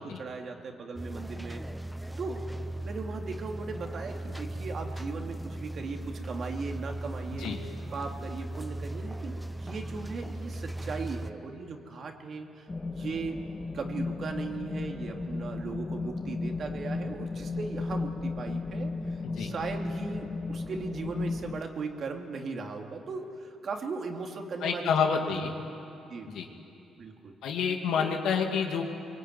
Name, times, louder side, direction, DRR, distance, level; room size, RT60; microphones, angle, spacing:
voice 1, 0.0-1.6 2.2-7.6 7.9-13.4 13.7-25.2 26.1-26.3 27.0-27.4 27.9-28.1, right 4 dB, 55° right, 3 dB, 2.6 m, -38 dB
sound 1, 1.0-11.3, right 1 dB, 5° right, 0.8 m, -38 dB
sound 2, 12.7-21.6, left 3 dB, 20° left, 1.6 m, -35 dB
voice 2, 24.6-25.5 26.3-26.5 27.4-28.8, left 6 dB, 80° left, 3 dB, 2.6 m, -28 dB
23.0 x 22.5 x 9.4 m, 2.8 s
cardioid pair, 90°, 0 cm